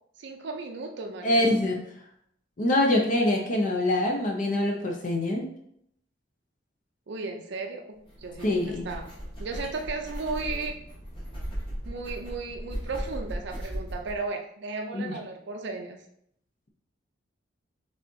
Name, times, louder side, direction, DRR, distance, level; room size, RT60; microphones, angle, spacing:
voice 1, 0.2-1.7 7.1-9.1 9.4-10.7 11.9-16.0, right 3 dB, 65° right, 3 dB, 0.5 m, -35 dB
voice 2, 1.2-1.8 2.6-5.5 8.4-8.8 14.9-15.1, left 1 dB, 45° left, 1 dB, 0.6 m, -24 dB
sound 1, 8.0-14.2, equal, 30° left, 1.5 m, -37 dB
5.5 x 3.5 x 2.7 m, 0.73 s
head